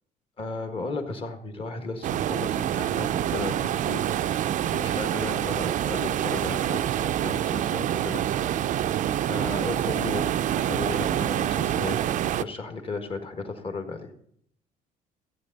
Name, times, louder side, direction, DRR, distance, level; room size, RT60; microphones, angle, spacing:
voice 1, 0.4-4.0 4.7-8.2 8.6-10.2 10.6-14.1, left 3 dB, 35° left, 6 dB, 1.6 m, -35 dB
sound 1, 2.0-12.4, right 11 dB, 55° right, 0.4 m, -26 dB
14.5 x 8.7 x 4.0 m, 0.67 s
cardioid pair, 125°, 16 cm